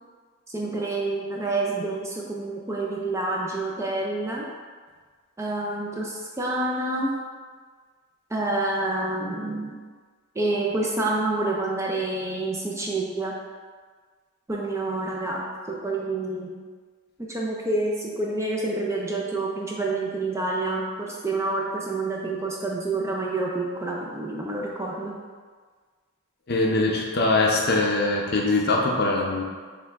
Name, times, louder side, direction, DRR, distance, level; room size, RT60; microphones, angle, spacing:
voice 1, 0.5-4.5 5.4-7.1 8.3-9.7 10.3-13.3 14.5-16.6 17.2-25.2, right 2 dB, 15° right, -2 dB, 0.4 m, -28 dB
voice 2, 26.5-29.4, left 2 dB, 50° left, -1 dB, 0.6 m, -22 dB
5.2 x 2.2 x 3.5 m, 1.5 s
head